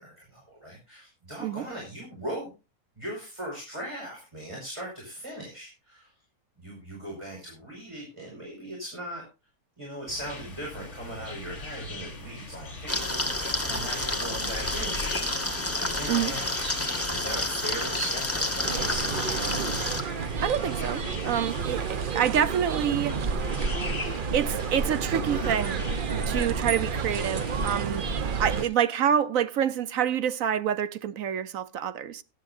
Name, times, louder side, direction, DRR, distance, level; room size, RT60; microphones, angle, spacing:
voice 1, 0.0-2.5 3.0-6.1 6.6-9.2 9.8-15.2 15.8-19.6, right 1 dB, 20° right, 5.2 m, -39 dB
sound 1, 10.1-28.7, left 2 dB, 50° left, 3.5 m, -41 dB
sound 2, 12.9-20.0, left 1 dB, 10° left, 1.6 m, -29 dB
sound 3, 18.6-28.6, right 5 dB, 50° right, 0.7 m, -30 dB
voice 2, 20.4-23.2 24.0-25.8 26.3-32.2, right 9 dB, 65° right, 1.1 m, -27 dB
17.5 x 11.5 x 2.6 m
omnidirectional pair, 1.6 m